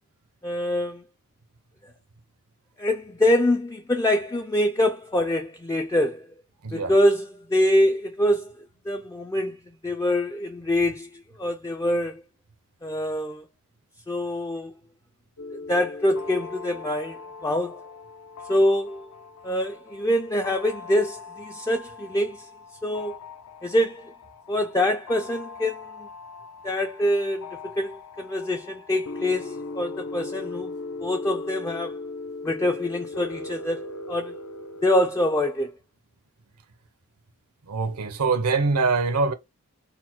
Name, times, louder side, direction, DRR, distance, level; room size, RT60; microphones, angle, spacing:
voice 1, 0.4-1.0 1.8-1.9 2.8-6.3 6.7-8.5 8.9-12.2 12.8-13.5 14.1-14.7 15.5-17.8 18.5-19.1 19.4-22.5 22.8-23.2 23.6-24.1 24.5-26.1 26.6-30.7 31.0-32.0 32.4-34.4 34.8-35.7, left 1 dB, 15° left, 0.3 m, -25 dB
voice 2, 6.6-6.9 37.7-39.3, right 4 dB, 80° right, 0.7 m, -23 dB
sound 1, 15.4-34.9, left 3 dB, 70° left, 0.5 m, -39 dB
4.1 x 2.1 x 4.2 m
head